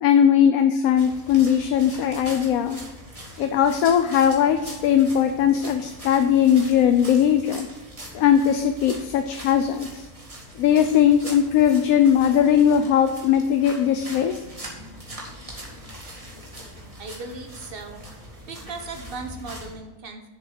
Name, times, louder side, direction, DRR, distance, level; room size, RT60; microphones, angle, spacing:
voice 1, 0.0-2.8 3.4-7.7 8.1-10.1 10.6-14.4, left 9 dB, 80° left, 7 dB, 1.1 m, -19 dB
sound 1, 1.0-19.7, equal, 25° right, 2.0 m, -41 dB
voice 2, 17.0-18.0 18.5-20.3, right 3 dB, 40° right, 5 dB, 1.3 m, -37 dB
7.3 x 7.2 x 6.5 m, 1.1 s
omnidirectional pair, 1.5 m